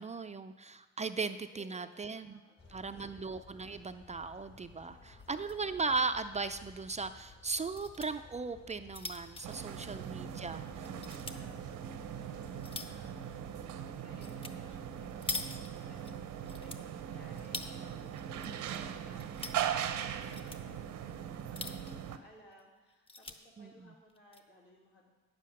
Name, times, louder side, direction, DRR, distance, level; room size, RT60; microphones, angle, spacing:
voice 1, 0.0-2.4 2.7-10.9 18.5-18.8 23.6-23.9, right 4 dB, 25° right, 10 dB, 0.4 m, -38 dB
voice 2, 1.5-3.2 4.8-5.4 9.4-9.9 10.9-25.1, left 1 dB, 80° left, -3 dB, 3.1 m, -61 dB
sound 1, 2.6-13.7, left 4 dB, 40° left, 1.5 m, -57 dB
sound 2, 5.2-5.7 6.0-6.1 6.4-6.5 7.5-8.1 8.6-10.4 10.9-11.4 12.0-13.1 14.2-14.5 14.8-16.1 16.5-17.7 18.2-18.8 19.1-19.6 20.2-20.6 21.3-22.1 22.5-22.6 22.9-23.4 24.1-24.4, left 2 dB, 20° left, 0.8 m, -43 dB
sound 3, 9.4-22.2, right 9 dB, 75° right, 0.8 m, -40 dB
9.2 x 7.5 x 6.4 m, 1.2 s
cardioid pair, 90°, 30 cm